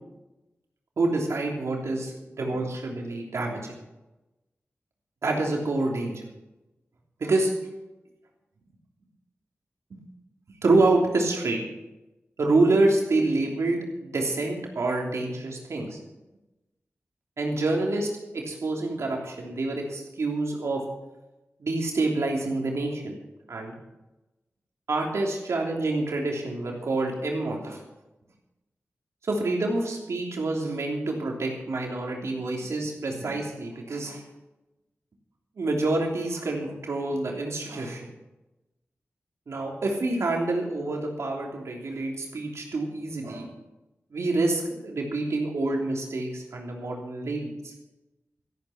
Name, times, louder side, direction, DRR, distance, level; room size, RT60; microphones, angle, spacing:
voice 1, 1.0-3.7 5.2-6.2 7.2-7.5 9.9-10.0 10.6-11.6 12.4-16.0 17.4-20.8 21.6-23.2 23.5-23.7 24.9-27.8 29.2-34.2 35.6-38.1 39.5-43.5 44.1-47.7, right 2 dB, 85° right, 0 dB, 3.2 m, -27 dB
13.5 x 12.5 x 5.9 m, 1.0 s
wide cardioid pair, 80°, 5 cm